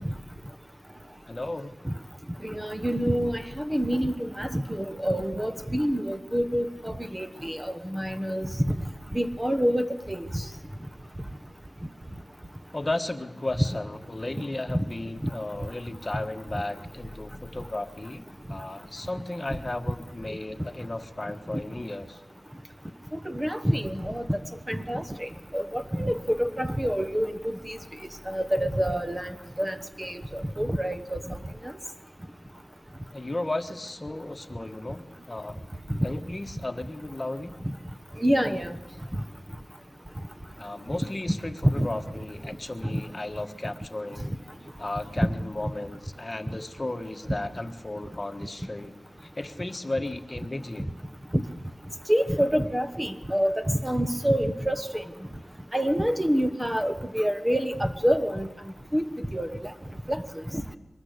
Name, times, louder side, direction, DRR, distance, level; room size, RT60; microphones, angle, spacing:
voice 1, 1.3-1.7 12.7-22.2 33.1-35.5 36.0-37.5 40.6-44.3 44.8-48.9 49.2-50.9, left 2 dB, 25° left, 8 dB, 1.4 m, -34 dB
voice 2, 2.4-8.5 9.1-10.3 15.2-15.3 23.3-24.4 24.7-25.3 25.5-27.8 28.3-29.3 29.6-31.2 38.2-38.7 41.8-41.9 42.8-43.0 51.3-51.4 52.1-55.1 55.7-58.5 58.9-59.1 59.3-59.5 60.1-60.2 60.5-60.6, equal, 15° right, 9 dB, 1.1 m, -27 dB
23.5 x 20.0 x 8.2 m, 1.0 s
wide cardioid pair, 90°, 0 cm